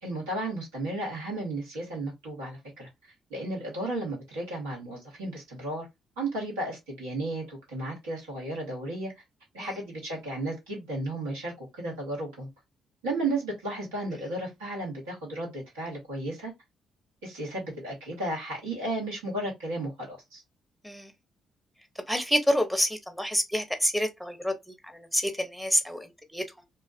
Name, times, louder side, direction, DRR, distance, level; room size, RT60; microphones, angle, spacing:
voice 1, 0.0-2.9 3.3-5.9 6.2-9.1 9.5-12.5 13.0-16.5 17.2-20.4, right 2 dB, 75° right, 1.4 m, -34 dB
voice 2, 22.1-26.4, equal, ahead, 0.8 m, -28 dB
2.8 x 2.3 x 2.5 m
figure-of-eight pair, 45°, 0 cm